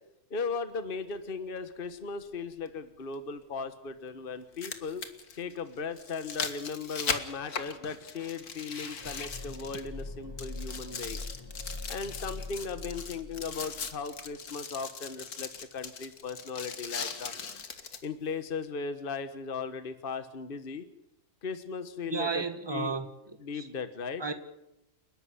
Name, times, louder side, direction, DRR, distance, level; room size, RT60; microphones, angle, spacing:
voice 1, 0.3-5.0 5.4-11.2 11.9-17.3 18.0-20.8 21.4-22.4 22.7-23.0 23.4-24.2, left 5 dB, 40° left, 1.5 m, -37 dB
sound 1, 1.1-1.2 3.1-3.2 4.3-10.1 10.4-18.1 18.6-18.7, left 5 dB, 80° left, 2.3 m, -39 dB
sound 2, 9.0-14.0 14.3-14.4, left 2 dB, 20° left, 1.0 m, -42 dB
voice 2, 22.1-23.7 24.2-24.3, right 4 dB, 15° right, 1.9 m, -33 dB
30.0 x 12.0 x 9.8 m
omnidirectional pair, 1.6 m